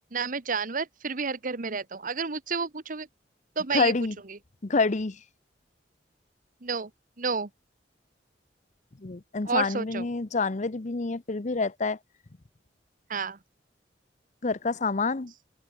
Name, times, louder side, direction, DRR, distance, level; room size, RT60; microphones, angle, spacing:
voice 1, 0.1-3.1 3.6-3.9 4.3-4.4 6.6-6.9 7.2-7.5 9.4-10.1 13.1-13.4, right 5 dB, 50° right, 1.2 m, -30 dB
voice 2, 3.7-4.1 4.6-5.2 9.0-12.0 14.4-15.3, left 3 dB, 45° left, 0.8 m, -27 dB
open air
head